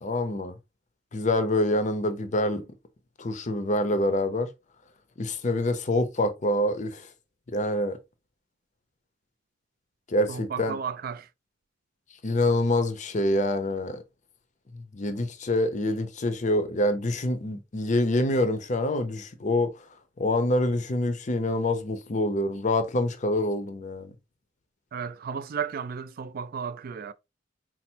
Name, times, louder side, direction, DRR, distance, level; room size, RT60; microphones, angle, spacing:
voice 1, 0.0-0.6 1.1-2.6 3.2-4.5 5.2-7.1 7.5-8.0 10.1-10.8 12.2-14.0 14.7-19.7 20.2-24.1, left 1 dB, 40° left, 0.6 m, -26 dB
voice 2, 10.3-11.3 24.9-27.1, right 6 dB, 50° right, 0.4 m, -34 dB
4.2 x 2.0 x 4.3 m
head